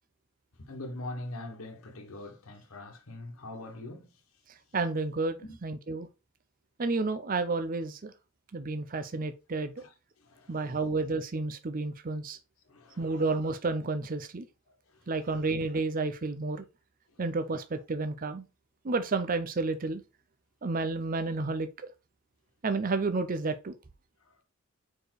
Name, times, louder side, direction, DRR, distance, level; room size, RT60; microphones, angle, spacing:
voice 1, 0.6-4.1 5.4-5.6 9.8-9.9 10.2-10.6 12.7-13.2, left 1 dB, 80° left, 1.3 m, -42 dB
voice 2, 4.7-6.1 6.8-8.1 8.5-9.7 10.5-12.4 13.0-14.5 15.1-16.6 17.2-18.5 18.8-20.0 20.6-21.7 22.6-23.8, right 3 dB, 40° right, 0.6 m, -31 dB
4.9 x 4.5 x 4.6 m
head